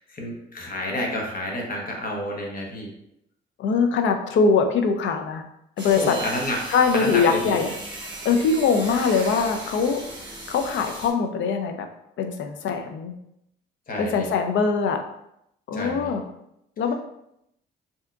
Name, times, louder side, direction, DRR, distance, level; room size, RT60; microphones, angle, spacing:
voice 1, 0.0-2.9 5.9-6.6 6.9-7.6 13.9-14.3 15.7-16.1, left 1 dB, 45° left, 0 dB, 0.9 m, -29 dB
voice 2, 3.6-5.4 5.8-6.1 6.7-7.7 8.0-10.0 10.5-11.9 12.2-13.1 14.0-15.0 15.7-16.2 16.8-16.9, left 5 dB, 70° left, 5 dB, 0.5 m, -22 dB
sound 1, 5.8-11.1, right 2 dB, 20° right, 0.9 m, -37 dB
3.4 x 2.7 x 2.3 m, 0.79 s
cardioid pair, 90°, 20 cm